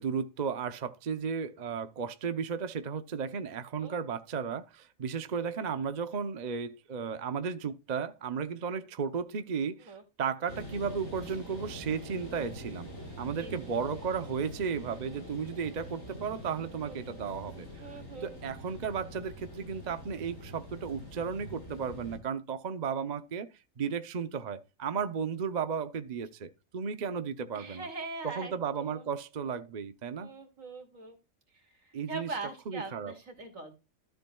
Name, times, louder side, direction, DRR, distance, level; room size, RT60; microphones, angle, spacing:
voice 1, 0.0-12.9 13.2-17.7 18.2-23.5 23.8-27.9 28.2-30.3 31.9-32.3 32.7-33.1, right 6 dB, 40° right, 0.7 m, -34 dB
sound 1, 10.5-22.2, equal, 75° left, 5.5 m, -45 dB
voice 2, 17.8-18.3 27.5-28.5 28.8-29.1 30.2-31.2 31.5-33.7, right 3 dB, 75° right, 2.9 m, -42 dB
13.0 x 7.4 x 2.3 m
omnidirectional pair, 1.4 m